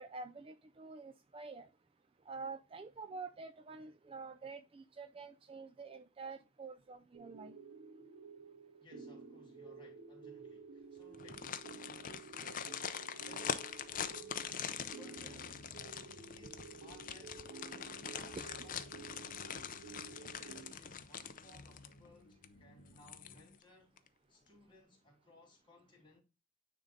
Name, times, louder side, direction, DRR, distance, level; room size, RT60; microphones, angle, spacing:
voice 1, 0.0-1.7 2.3-7.5 18.4-18.5, right 4 dB, 25° right, 0.3 m, -48 dB
sound 1, 7.1-20.7, right 5 dB, 90° right, 1.7 m, -53 dB
voice 2, 8.8-12.8 13.2-13.6 13.9-15.6 16.3-18.4 18.6-23.9 24.3-26.2, left 1 dB, 25° left, 3.1 m, -63 dB
sound 2, 11.1-22.1 22.4-22.5 23.0-23.6 24.0-24.1, left 7 dB, 40° left, 0.6 m, -43 dB
sound 3, 13.9-23.6, left 1 dB, 80° left, 1.2 m, -61 dB
9.6 x 3.8 x 3.8 m
head